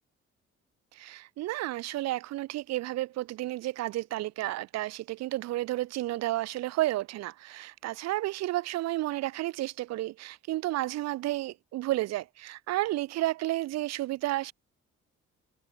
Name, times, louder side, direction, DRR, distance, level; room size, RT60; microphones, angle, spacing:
voice 1, 0.9-14.5, right 16 dB, 55° right, 0.4 m, -32 dB
hypercardioid pair, 55°, 31 cm